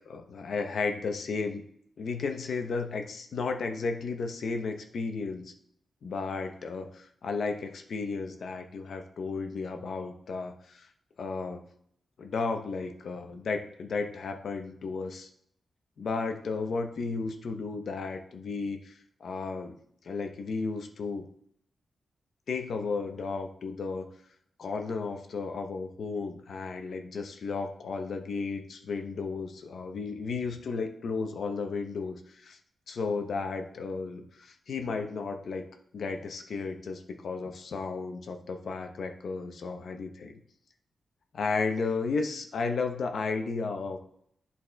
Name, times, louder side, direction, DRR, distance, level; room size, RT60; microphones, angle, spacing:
voice 1, 0.0-1.6 2.0-5.5 6.0-10.9 11.2-11.6 12.2-15.3 16.0-19.8 20.0-21.3 22.5-24.1 24.6-32.6 32.9-35.7 35.9-40.4 41.3-44.0, left 4 dB, 60° left, 5 dB, 0.7 m, -33 dB
11.0 x 4.1 x 2.2 m, 0.68 s
wide cardioid pair, 180°, 0 cm